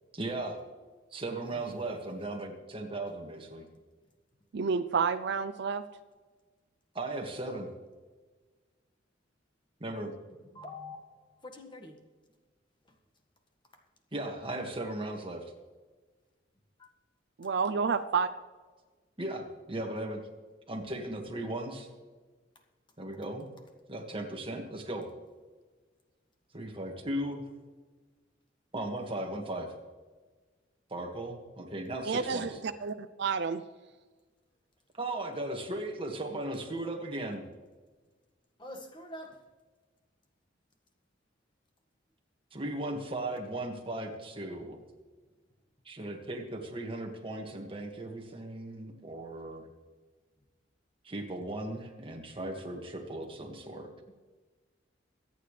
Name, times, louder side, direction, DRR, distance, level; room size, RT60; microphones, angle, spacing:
voice 1, 0.1-0.6 1.1-3.7 6.9-7.7 9.8-10.1 14.1-15.5 19.2-20.3 20.7-21.9 23.0-23.5 23.9-25.1 26.5-27.4 28.7-29.7 30.9-32.5 35.0-37.5 42.5-44.8 45.9-49.7 51.0-53.9, right 1 dB, 30° right, 2 dB, 2.0 m, -37 dB
voice 2, 4.5-5.8 17.4-18.3 32.1-33.6, right 5 dB, 65° right, 9 dB, 0.5 m, -30 dB
voice 3, 10.5-11.9 16.8-16.9 38.6-39.4, left 2 dB, 25° left, 4 dB, 1.7 m, -45 dB
23.5 x 9.5 x 3.3 m, 1.4 s
head